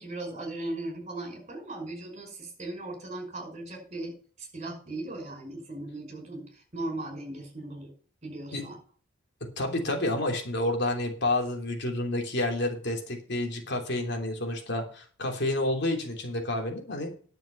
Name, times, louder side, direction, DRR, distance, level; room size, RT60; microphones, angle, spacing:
voice 1, 0.0-7.9 8.2-8.8, right 2 dB, 35° right, 3 dB, 5.4 m, -38 dB
voice 2, 9.4-17.1, left 1 dB, 55° left, 3 dB, 3.1 m, -29 dB
11.0 x 7.1 x 6.7 m, 0.42 s
head